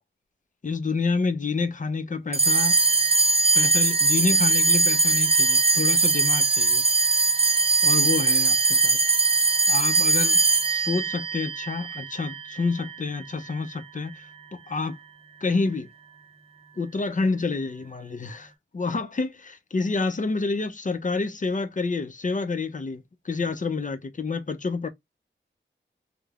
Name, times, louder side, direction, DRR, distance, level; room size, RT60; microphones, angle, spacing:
voice 1, 0.6-2.8 3.5-6.8 7.8-9.1 9.7-10.4 10.7-15.0 15.4-15.9 16.8-24.9, left 4 dB, 40° left, 0.5 m, -28 dB
sound 1, 2.3-13.0, right 3 dB, 30° right, 0.6 m, -21 dB
3.1 x 2.0 x 2.3 m
wide cardioid pair, 60°, 21 cm